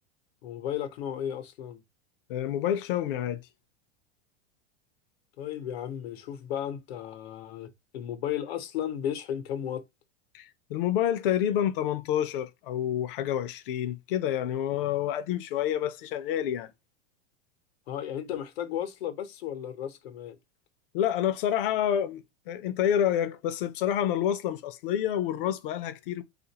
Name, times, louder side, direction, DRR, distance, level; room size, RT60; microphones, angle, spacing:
voice 1, 0.4-1.8 5.4-9.8 17.9-20.4, left 10 dB, 90° left, 0.9 m, -34 dB
voice 2, 2.3-3.4 10.3-16.7 20.9-26.2, left 10 dB, 60° left, 0.6 m, -28 dB
3.5 x 2.5 x 2.8 m
supercardioid pair, 170°, 30 cm